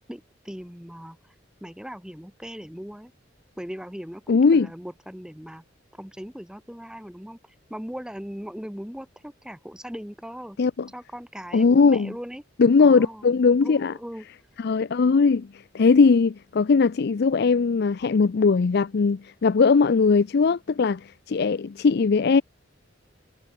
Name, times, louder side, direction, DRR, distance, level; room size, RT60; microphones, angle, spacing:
voice 1, 0.1-1.2 1.6-3.1 3.6-5.6 5.9-7.4 7.7-10.6 10.9-12.4 12.8-13.3 13.6-14.2, equal, 5° right, 1.2 m, -39 dB
voice 2, 4.3-4.7 10.6-10.9 11.5-12.1 12.6-13.9 14.6-15.5 15.7-22.4, left 4 dB, 60° left, 0.5 m, -19 dB
head